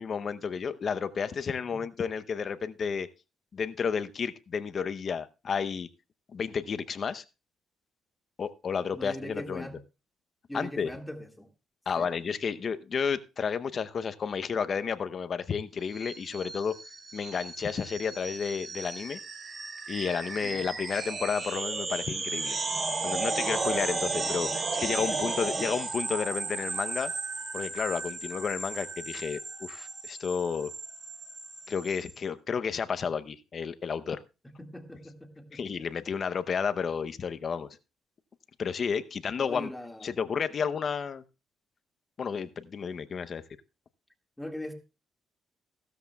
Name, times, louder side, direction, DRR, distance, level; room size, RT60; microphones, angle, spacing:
voice 1, 0.0-3.1 3.5-5.9 6.3-7.2 8.4-9.7 10.5-10.9 11.9-16.7 17.1-19.2 19.9-22.6 23.0-27.1 27.5-30.7 31.7-34.2 35.5-37.7 38.6-39.7 40.0-41.2 42.2-43.4, left 6 dB, 50° left, 12 dB, 0.7 m, -31 dB
voice 2, 8.9-9.8 10.5-11.5 12.0-12.1 20.4-20.6 24.0-24.3 25.0-25.6 34.6-35.6 39.4-40.1 44.4-44.7, left 1 dB, 10° left, 4 dB, 1.9 m, -41 dB
sound 1, 15.9-32.1, right 3 dB, 35° right, 2.7 m, -34 dB
15.5 x 13.0 x 2.3 m, 0.29 s
cardioid pair, 90°, 0 cm